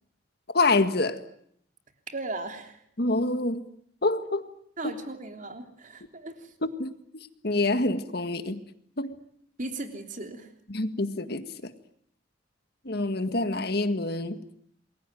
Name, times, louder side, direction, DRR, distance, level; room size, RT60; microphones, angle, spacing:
voice 1, 0.5-1.2 3.0-3.7 4.0-4.4 4.8-4.9 6.8-6.9 7.4-8.6 9.0-9.1 10.7-11.7 12.9-14.4, left 2 dB, 55° left, 1.8 m, -26 dB
voice 2, 2.1-2.8 4.8-6.5 9.6-10.5, right 2 dB, 40° right, 3.3 m, -37 dB
28.5 x 22.0 x 9.2 m
head